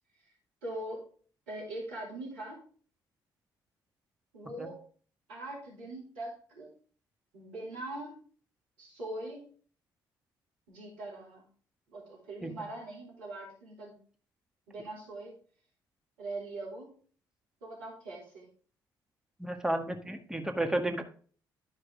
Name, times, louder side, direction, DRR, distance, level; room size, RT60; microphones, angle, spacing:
voice 1, 0.6-1.1 1.5-2.6 4.3-4.8 5.3-6.8 7.3-8.2 8.8-9.4 10.7-11.4 11.9-13.9 14.7-15.3 16.2-17.0 17.6-18.5, right 1 dB, 75° right, -5 dB, 3.2 m, -42 dB
voice 2, 19.4-21.0, right 1 dB, 5° right, 4 dB, 1.6 m, -32 dB
12.5 x 4.8 x 3.7 m, 0.43 s
figure-of-eight pair, 45°, 11 cm